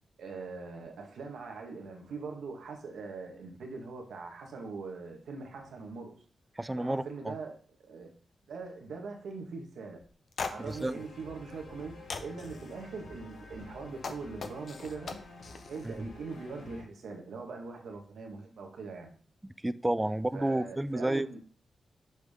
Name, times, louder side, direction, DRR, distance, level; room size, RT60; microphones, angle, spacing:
voice 1, 0.2-6.2 6.7-7.6 7.8-8.1 8.5-10.0 10.5-15.2 15.7-19.1 20.3-21.4, right 4 dB, 90° right, 1.4 m, -42 dB
voice 2, 6.6-7.3 10.7-11.0 15.8-15.9 19.6-21.3, right 1 dB, 10° right, 0.3 m, -31 dB
sound 1, 10.0-10.1 10.3-10.9 11.5-11.8 12.1-12.6 13.5-15.9, left 4 dB, 55° left, 0.7 m, -40 dB
sound 2, 10.5-16.8, left 2 dB, 85° left, 1.5 m, -50 dB
6.2 x 5.3 x 3.6 m
wide cardioid pair, 110°, 0 cm